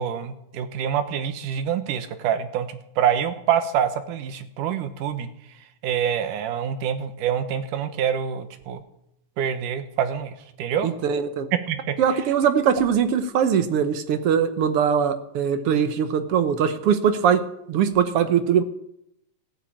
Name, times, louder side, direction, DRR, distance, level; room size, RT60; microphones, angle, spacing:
voice 1, 0.0-2.7 3.0-5.3 5.8-8.8 9.4-10.3 10.6-10.9 11.7-12.0, right 8 dB, 85° right, 10 dB, 2.7 m, -26 dB
voice 2, 10.8-11.5 12.0-17.4 17.7-18.6, right 7 dB, 65° right, 10 dB, 1.4 m, -21 dB
14.5 x 9.0 x 8.6 m, 0.78 s
omnidirectional pair, 3.6 m